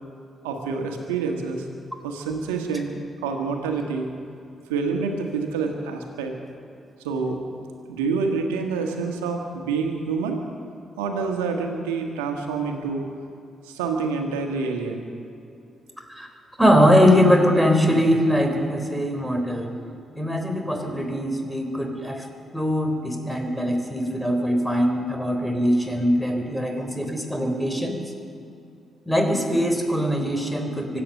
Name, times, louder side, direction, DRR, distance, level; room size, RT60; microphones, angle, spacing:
voice 1, 0.4-1.7 2.0-4.1 4.7-6.3 7.0-7.4 7.9-10.4 11.0-13.1 13.6-15.1, right 4 dB, 90° right, 3 dB, 1.6 m, -27 dB
voice 2, 16.6-19.7 20.1-22.3 22.5-27.9 29.1-31.0, equal, ahead, 4 dB, 3.8 m, -21 dB
24.5 x 8.7 x 6.5 m, 2.6 s
hypercardioid pair, 40°, 0 cm